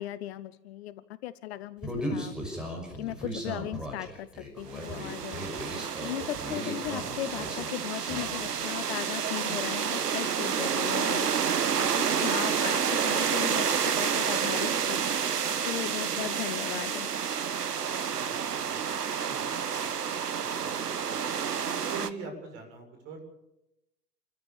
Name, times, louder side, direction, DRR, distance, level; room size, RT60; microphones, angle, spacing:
voice 1, 0.0-4.3 4.6-15.3 15.6-17.1, left 14 dB, 40° left, 16 dB, 0.8 m, -37 dB
Human voice, 1.8-8.6, equal, ahead, 6.0 m, -37 dB
sound 1, 4.7-22.1, right 7 dB, 75° right, 1.3 m, -29 dB
voice 2, 18.1-23.3, right 3 dB, 40° right, 4 dB, 7.4 m, -45 dB
28.0 x 14.0 x 7.2 m, 0.88 s
figure-of-eight pair, 100°, 48 cm